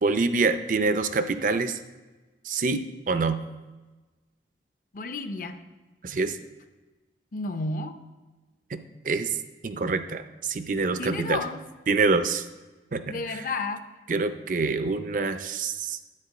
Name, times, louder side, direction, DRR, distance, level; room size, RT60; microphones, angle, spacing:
voice 1, 0.0-1.8 2.4-3.4 6.0-6.4 8.7-9.3 9.6-11.4 11.9-12.4 12.9-13.4 14.1-16.0, right 4 dB, 45° right, 10 dB, 0.5 m, -26 dB
voice 2, 4.9-5.6 7.3-8.0 11.0-11.6 13.1-13.8, left 3 dB, 50° left, 9 dB, 0.6 m, -31 dB
9.8 x 4.5 x 7.7 m, 1.2 s
head